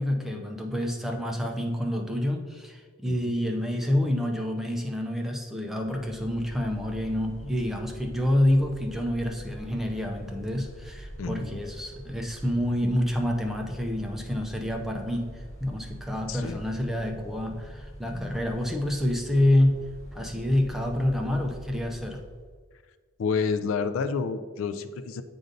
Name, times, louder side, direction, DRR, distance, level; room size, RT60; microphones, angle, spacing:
voice 1, 0.0-19.8 20.1-22.2, left 1 dB, ahead, 1 dB, 0.5 m, -27 dB
Mechanical fan, 5.8-22.6, right 1 dB, 35° left, 0.9 m, -44 dB
voice 2, 11.2-11.5 16.3-16.6 23.2-25.2, left 5 dB, 65° left, 11 dB, 0.3 m, -29 dB
7.7 x 2.6 x 5.1 m, 1.6 s
head